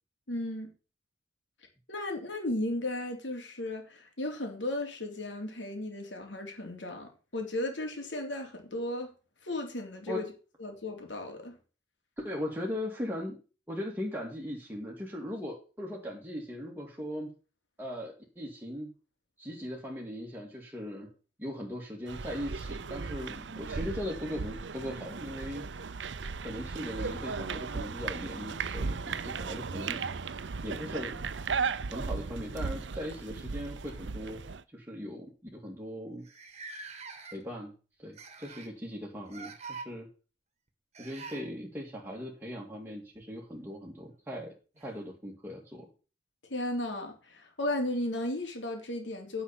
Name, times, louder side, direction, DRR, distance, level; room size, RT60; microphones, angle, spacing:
voice 1, 0.3-0.7 1.9-9.1 9.4-10.3 10.6-11.5 46.5-49.4, left 1 dB, 85° left, 3.5 m, -35 dB
voice 2, 12.2-13.4 13.7-17.3 17.8-18.9 19.4-21.1 21.4-25.6 26.4-31.2 31.9-34.4 34.7-36.2 37.3-37.7 38.0-40.1 41.0-44.5 44.8-45.9, equal, 10° right, 2.2 m, -39 dB
sound 1, 22.1-34.6, right 5 dB, 75° right, 0.7 m, -36 dB
sound 2, 32.4-32.8 33.8-34.0 34.4-34.6 35.3-35.4 35.5-35.6 36.2-37.6 38.2-38.8 39.3-39.9 40.9-41.5 43.6-43.7 44.8-44.9, right 4 dB, 40° right, 1.8 m, -45 dB
10.0 x 5.7 x 6.9 m
head